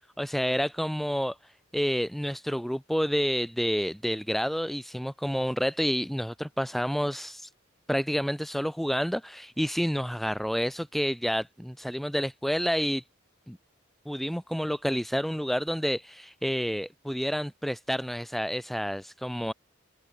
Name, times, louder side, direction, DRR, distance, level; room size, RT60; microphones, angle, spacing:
voice 1, 0.2-7.5 7.9-13.0 13.5-13.6 14.1-19.5, equal, ahead, 2.3 m, -29 dB
open air
head